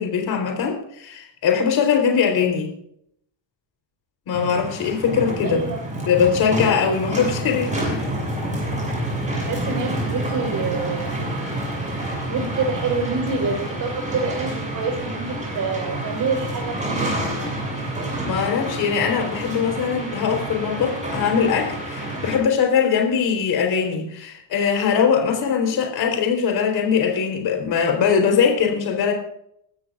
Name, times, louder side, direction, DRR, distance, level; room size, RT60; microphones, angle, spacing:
voice 1, 0.0-2.7 4.3-5.6 6.1-8.0 18.2-29.1, left 6 dB, 50° left, 2 dB, 4.0 m, -21 dB
sound 1, 4.3-22.4, right 1 dB, 15° right, 6.9 m, -28 dB
voice 2, 5.4-5.9 9.4-11.1 12.3-17.2, right 4 dB, 45° right, 2 dB, 4.8 m, -27 dB
22.0 x 14.0 x 2.5 m, 0.71 s
cardioid pair, 160°, 47 cm